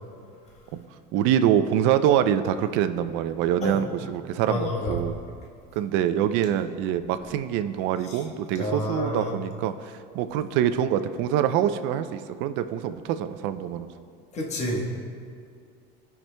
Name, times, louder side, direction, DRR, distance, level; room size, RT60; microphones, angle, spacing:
voice 1, 1.1-5.2 5.8-13.9, right 10 dB, 70° right, 11 dB, 0.5 m, -25 dB
voice 2, 4.5-5.0 8.1-8.2 8.6-9.3 14.3-15.0, left 1 dB, 35° left, -1 dB, 1.2 m, -29 dB
17.0 x 5.9 x 2.2 m, 2.2 s
cardioid pair, 155°, 20 cm